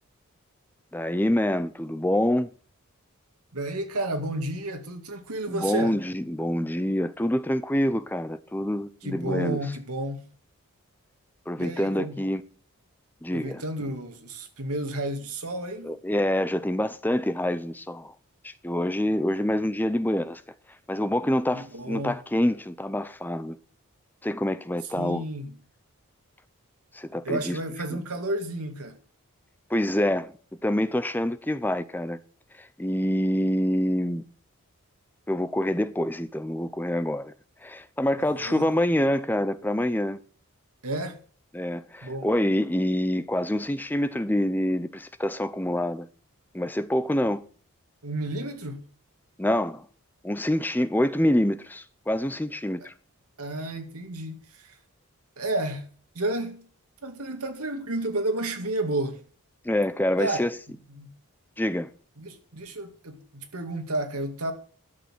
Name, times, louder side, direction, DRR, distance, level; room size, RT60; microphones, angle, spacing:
voice 1, 0.9-2.5 5.5-9.6 11.5-12.4 13.2-13.6 15.8-18.1 18.4-20.4 20.9-23.6 24.2-25.2 26.9-27.6 27.9-28.0 29.7-30.3 30.6-32.2 32.6-34.2 35.3-37.3 37.6-40.2 41.5-46.1 46.5-47.4 49.4-49.9 50.2-52.9 59.6-60.5 61.6-61.9, left 1 dB, 10° left, 0.6 m, -26 dB
voice 2, 3.5-6.0 9.0-10.3 11.6-12.2 13.3-16.0 21.5-22.2 25.0-25.6 27.2-29.0 38.2-38.7 40.8-41.2 42.0-42.3 48.0-48.8 53.4-54.8 55.4-55.9 56.1-56.7 57.0-59.2 60.2-60.5 60.9-61.1 62.2-64.5, right 1 dB, 85° right, 2.4 m, -31 dB
11.0 x 6.8 x 7.8 m
head